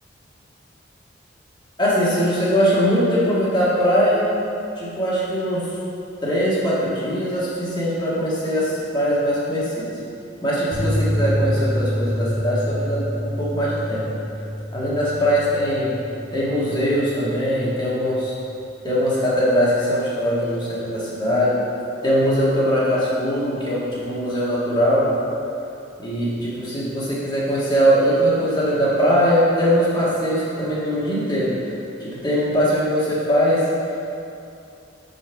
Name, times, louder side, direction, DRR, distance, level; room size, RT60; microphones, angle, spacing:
voice 1, 1.8-4.3 4.8-5.7 6.2-10.0 10.4-14.0 14.7-16.0 16.3-18.3 18.8-21.6 22.0-25.1 26.0-31.6 32.0-33.6, equal, 25° left, -8 dB, 1.6 m, -21 dB
sound 1, 10.7-17.8 18.1-18.2 18.5-18.6, equal, 75° left, 1.4 m, -27 dB
5.6 x 5.4 x 4.6 m, 2.6 s
head